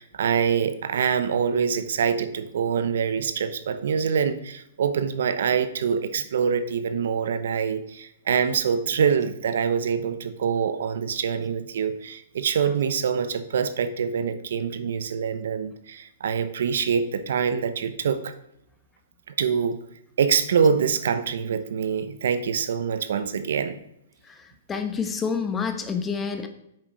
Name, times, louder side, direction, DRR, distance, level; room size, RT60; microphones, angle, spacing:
voice 1, 0.0-18.3 19.4-19.8 20.2-23.8, right 6 dB, 75° right, 11 dB, 0.9 m, -25 dB
voice 2, 24.7-26.5, left 6 dB, 15° left, 7 dB, 1.0 m, -28 dB
8.4 x 6.5 x 4.8 m, 0.79 s
hypercardioid pair, 145°, 0 cm